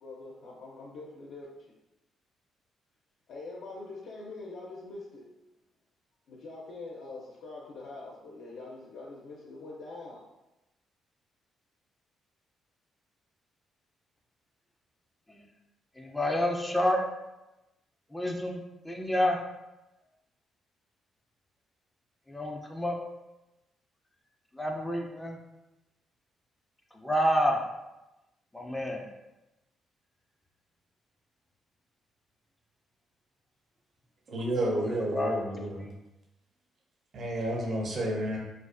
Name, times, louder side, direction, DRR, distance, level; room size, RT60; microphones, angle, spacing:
voice 1, 0.0-1.7 3.3-5.3 6.3-10.2, left 3 dB, 75° left, -4 dB, 0.4 m, -44 dB
voice 2, 15.9-17.0 18.1-19.4 22.3-23.0 24.5-25.4 26.9-27.6 28.5-29.1 34.7-35.9, equal, 10° left, 1 dB, 0.3 m, -29 dB
voice 3, 34.3-35.9 37.1-38.4, right 1 dB, 50° right, -1 dB, 0.6 m, -31 dB
2.3 x 2.3 x 2.4 m, 0.98 s
cardioid pair, 90°, 0 cm